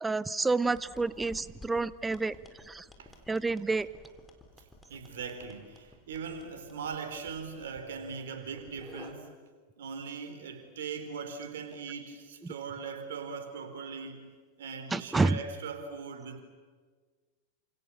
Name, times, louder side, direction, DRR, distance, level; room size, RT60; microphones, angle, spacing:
voice 1, 0.0-2.3 2.7-2.8 3.3-3.9 14.9-15.4, right 3 dB, 10° right, 19 dB, 0.8 m, -29 dB
sound 1, 0.6-9.1, left 2 dB, 10° left, 3.9 m, -54 dB
voice 2, 4.9-9.4 9.8-14.3 14.6-16.4, right 5 dB, 60° right, 7 dB, 4.1 m, -40 dB
28.5 x 27.5 x 7.1 m, 1.4 s
figure-of-eight pair, 90°, 0 cm